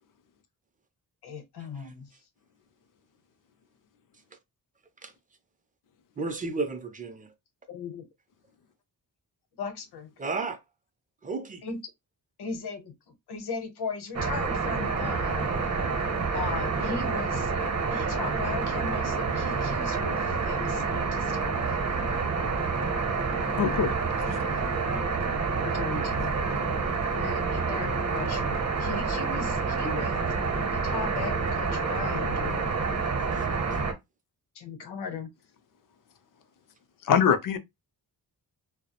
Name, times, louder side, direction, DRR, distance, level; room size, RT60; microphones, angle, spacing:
voice 1, 1.2-2.1 7.7-8.0 9.6-10.1 11.6-11.8 12.4-15.5 16.3-22.0 23.7-24.0 25.6-26.3 27.2-30.2 30.7-32.6 34.5-35.3, left 4 dB, 80° left, 0.8 m, -37 dB
voice 2, 6.2-7.3 10.2-10.6 11.2-11.6 33.2-33.8, right 4 dB, 20° right, 0.4 m, -34 dB
sound 1, 14.1-33.9, right 4 dB, 45° right, 0.8 m, -28 dB
voice 3, 23.6-23.9 37.0-37.6, left 7 dB, 55° left, 0.4 m, -22 dB
2.2 x 2.0 x 2.8 m
wide cardioid pair, 115°, 39 cm